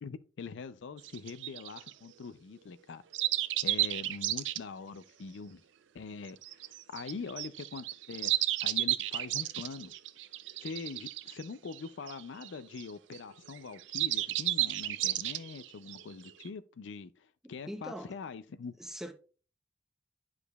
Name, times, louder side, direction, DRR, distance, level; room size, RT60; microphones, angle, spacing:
voice 1, 0.0-3.0 3.6-5.6 5.9-6.4 6.6-8.3 8.6-9.9 10.6-18.7, left 5 dB, 75° left, 0.4 m, -43 dB
sound 1, 1.0-1.9 3.1-4.6 6.3-13.2 13.5-16.5, right 15 dB, 75° right, 0.4 m, -33 dB
voice 2, 17.4-18.1 18.8-19.1, equal, 5° right, 0.7 m, -42 dB
9.9 x 4.9 x 2.3 m
head